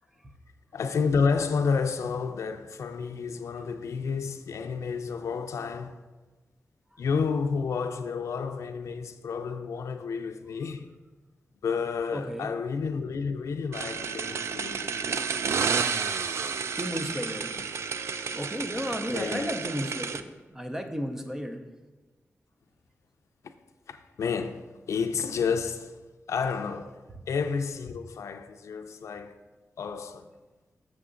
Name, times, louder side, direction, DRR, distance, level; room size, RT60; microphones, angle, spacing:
voice 1, 0.7-6.0 7.0-10.9 11.6-14.9 19.1-19.6 23.4-23.5 23.9-26.0 26.3-27.0 27.3-29.4 29.8-30.3, left 5 dB, 90° left, 0.4 m, -30 dB
voice 2, 12.1-12.5 16.8-17.5 18.3-20.2 20.5-21.6, equal, 10° right, 0.5 m, -33 dB
sound 1, 13.7-20.2, right 6 dB, 65° right, 0.3 m, -31 dB
6.8 x 6.3 x 3.7 m
wide cardioid pair, 175°, 5 cm